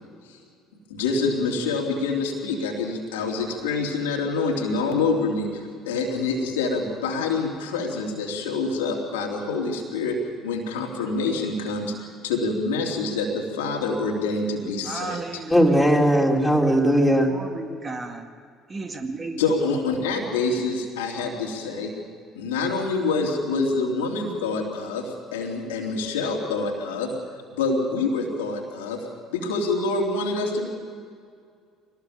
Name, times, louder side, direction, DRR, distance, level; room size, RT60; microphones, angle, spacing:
voice 1, 0.9-10.2 10.4-11.9 12.2-15.4 19.4-21.9 22.3-27.1 27.6-29.0 29.3-30.7, left 3 dB, 75° left, 0 dB, 3.2 m, -26 dB
voice 2, 14.9-15.8 16.7-16.8 17.3-18.2 18.7-19.4, right 3 dB, 30° right, 5 dB, 2.1 m, -34 dB
voice 3, 15.5-17.3, equal, 5° left, -1 dB, 4.0 m, -18 dB
25.0 x 19.0 x 7.2 m, 2.2 s
figure-of-eight pair, 55°, 0 cm